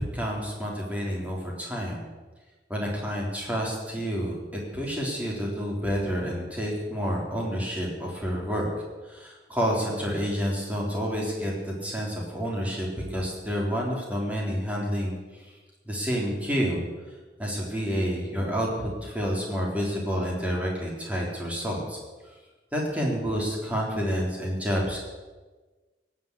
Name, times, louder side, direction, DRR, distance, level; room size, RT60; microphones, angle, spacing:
voice 1, 0.0-2.0 2.7-8.7 9.0-15.5 15.9-16.8 17.4-22.0 22.7-25.0, equal, 10° right, -2 dB, 3.6 m, -29 dB
18.0 x 7.7 x 8.5 m, 1.3 s
head